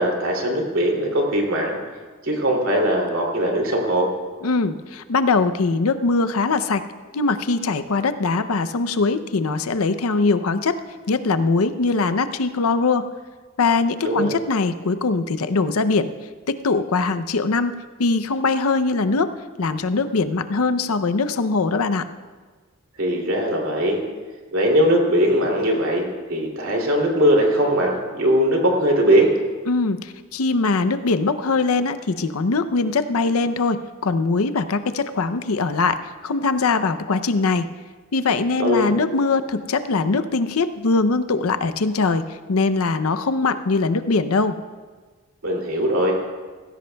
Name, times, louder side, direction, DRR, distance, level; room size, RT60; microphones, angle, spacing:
voice 1, 0.0-1.8 2.2-4.1 14.0-14.4 23.0-24.0 24.5-29.3 38.6-38.9 45.4-46.1, equal, 65° right, 0 dB, 2.8 m, -20 dB
voice 2, 4.4-6.8 7.1-10.8 11.1-13.1 13.6-16.1 16.5-17.7 18.0-19.3 19.6-22.0 29.7-36.0 36.2-37.6 38.1-42.2 42.5-44.5, left 3 dB, 75° left, 10 dB, 0.6 m, -21 dB
19.0 x 16.0 x 2.3 m, 1.4 s
head